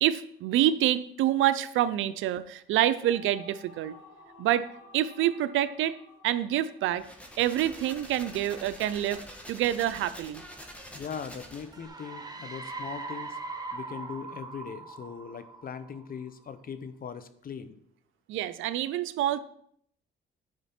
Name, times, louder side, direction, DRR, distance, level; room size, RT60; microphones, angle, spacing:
voice 1, 0.0-3.9 4.4-4.7 4.9-6.0 6.2-7.0 7.4-9.2 9.5-10.4 18.3-19.4, right 12 dB, 85° right, 13 dB, 0.5 m, -27 dB
sound 1, 2.5-8.0, left 1 dB, 85° left, 2.3 m, -54 dB
sound 2, 6.9-11.9, equal, 5° left, 1.7 m, -46 dB
voice 2, 10.9-13.4 13.7-17.8, left 6 dB, 45° left, 12 dB, 0.8 m, -40 dB
sound 3, 11.7-16.3, right 3 dB, 20° right, 1.0 m, -40 dB
10.0 x 5.1 x 4.3 m, 0.67 s
cardioid pair, 90°, 20 cm